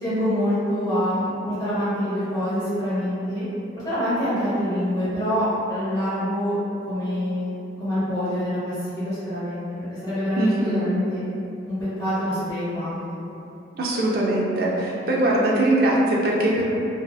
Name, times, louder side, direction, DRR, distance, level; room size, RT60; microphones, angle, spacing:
voice 1, 0.0-3.4 3.8-6.6 6.9-7.5 7.8-9.6 10.0-11.2 11.7-13.2, equal, 20° left, -15 dB, 1.1 m, -25 dB
voice 2, 10.4-10.9 13.7-16.6, right 1 dB, 50° right, -4 dB, 0.4 m, -21 dB
2.7 x 2.3 x 2.3 m, 2.6 s
head